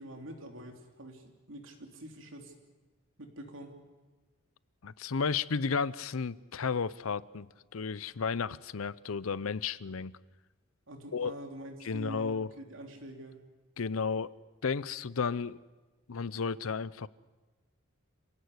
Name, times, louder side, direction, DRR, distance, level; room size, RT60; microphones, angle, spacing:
voice 1, 0.0-2.5 3.2-3.7 10.9-13.4, right 1 dB, 65° right, 4 dB, 3.2 m, -46 dB
voice 2, 4.8-7.5 7.7-10.1 11.1-11.4 11.8-12.5 13.8-14.3 14.6-15.6 16.1-17.1, left 5 dB, 80° left, 19 dB, 0.6 m, -33 dB
27.0 x 17.0 x 8.1 m, 1.2 s
head